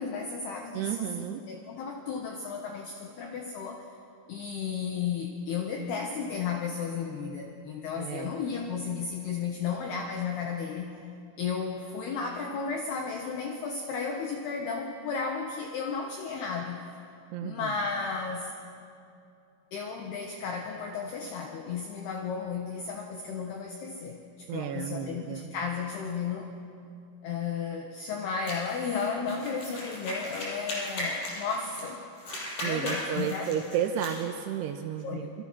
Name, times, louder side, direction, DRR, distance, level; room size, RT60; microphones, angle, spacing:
voice 1, 0.0-1.0 1.5-3.9 4.3-10.9 11.4-16.8 17.4-18.5 19.7-26.5 27.2-32.0 32.6-33.5 35.0-35.3, left 5 dB, 65° left, 2 dB, 2.9 m, -34 dB
voice 2, 0.7-1.4 8.0-8.3 17.3-17.7 24.5-25.5 32.6-35.3, right 9 dB, 80° right, 5 dB, 2.5 m, -32 dB
sound 1, 28.5-31.9 32.2-34.2, left 1 dB, 40° left, 7.2 m, -37 dB
27.0 x 25.0 x 6.1 m, 2.5 s
omnidirectional pair, 5.9 m